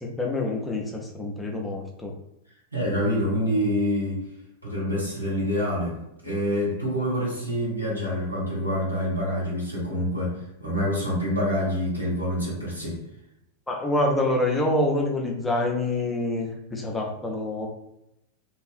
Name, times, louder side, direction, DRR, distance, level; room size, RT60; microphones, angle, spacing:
voice 1, 0.0-2.1 13.7-17.7, left 2 dB, 10° left, 0 dB, 0.5 m, -26 dB
voice 2, 2.7-4.2 4.6-6.0 6.2-13.0, equal, 85° right, -5 dB, 1.0 m, -26 dB
2.7 x 2.4 x 2.4 m, 0.83 s
figure-of-eight pair, 90°, 0 cm